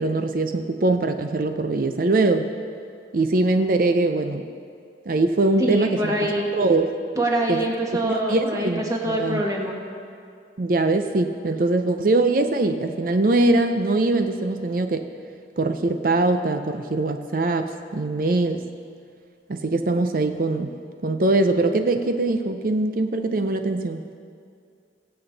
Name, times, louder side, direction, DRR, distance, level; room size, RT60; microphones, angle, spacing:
voice 1, 0.0-2.5 3.1-4.5 5.1-6.1 6.5-6.9 7.5-7.6 8.1-9.4 10.6-15.0 15.6-18.6 19.5-20.7 21.0-24.0, right 2 dB, 50° right, 7 dB, 0.5 m, -22 dB
voice 2, 5.6-6.5 7.1-9.8, right 1 dB, 20° right, -1 dB, 1.5 m, -24 dB
21.0 x 7.8 x 4.0 m, 2.3 s
head